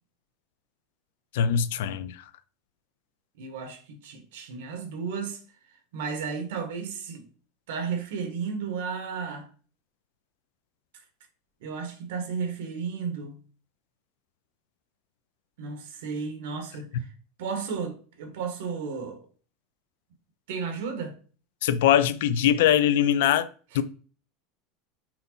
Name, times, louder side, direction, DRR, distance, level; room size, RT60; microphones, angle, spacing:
voice 1, 1.3-2.2 21.6-23.5 23.7-23.8, left 10 dB, 85° left, 0.5 m, -22 dB
voice 2, 3.4-5.4 5.9-7.3 7.7-9.5 11.6-13.3 15.6-17.1 17.4-19.2 20.5-21.1, right 5 dB, 80° right, 1.6 m, -33 dB
5.8 x 4.0 x 4.0 m
supercardioid pair, 165°, 0 cm